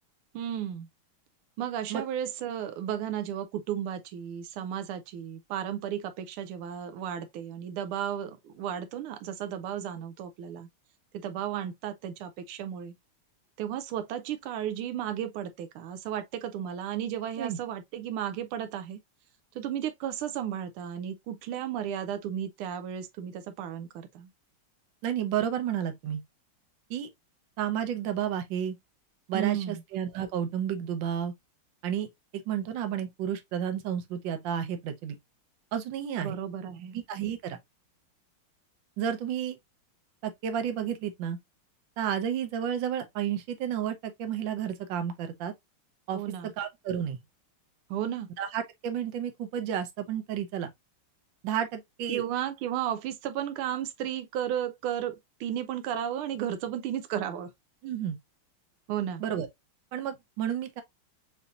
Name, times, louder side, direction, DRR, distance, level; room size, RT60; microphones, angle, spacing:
voice 1, 0.3-0.9 1.6-10.7 11.2-12.9 13.6-19.0 19.5-24.3 29.3-29.8 36.2-37.0 46.1-46.5 47.9-48.3 52.1-57.5 58.9-59.2, right 10 dB, 90° right, 1.5 m, -34 dB
voice 2, 25.0-26.2 26.9-27.1 27.6-28.7 29.3-31.3 31.8-32.1 32.5-35.2 35.7-36.3 36.9-37.6 39.0-39.6 40.2-41.4 42.0-45.5 46.1-46.2 46.6-47.2 48.4-50.7 51.4-52.2 57.8-58.2 59.2-59.5 59.9-60.8, right 9 dB, 70° right, 1.4 m, -31 dB
7.0 x 2.7 x 2.4 m
omnidirectional pair, 2.3 m